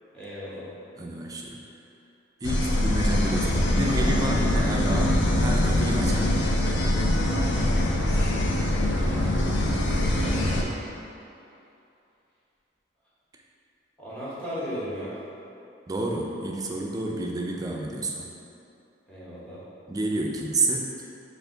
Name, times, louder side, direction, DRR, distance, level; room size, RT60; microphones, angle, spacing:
voice 1, 0.1-0.7 8.1-10.7 14.0-15.2 19.1-19.6, equal, 5° left, -10 dB, 1.1 m, -38 dB
voice 2, 1.0-1.6 2.4-6.3 15.9-18.3 19.9-21.1, right 2 dB, 20° right, 0 dB, 0.3 m, -29 dB
sound 1, 2.4-10.6, left 1 dB, 70° left, 0.5 m, -23 dB
4.3 x 2.5 x 3.8 m, 2.7 s
head